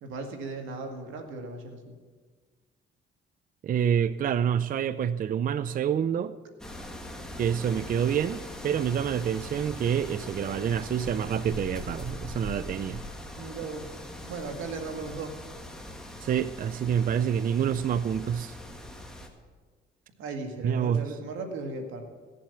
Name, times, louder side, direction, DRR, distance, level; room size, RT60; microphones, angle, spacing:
voice 1, 0.0-2.0 13.4-13.9 14.2-15.4 20.2-22.0, right 3 dB, 85° right, 4 dB, 1.9 m, -37 dB
voice 2, 3.6-6.4 7.4-13.0 16.2-18.6 20.6-21.0, right 8 dB, 45° right, 14 dB, 0.4 m, -27 dB
sound 1, 6.6-19.3, left 1 dB, 5° left, 1.8 m, -41 dB
17.0 x 7.4 x 7.0 m, 1.5 s
cardioid pair, 90°, 20 cm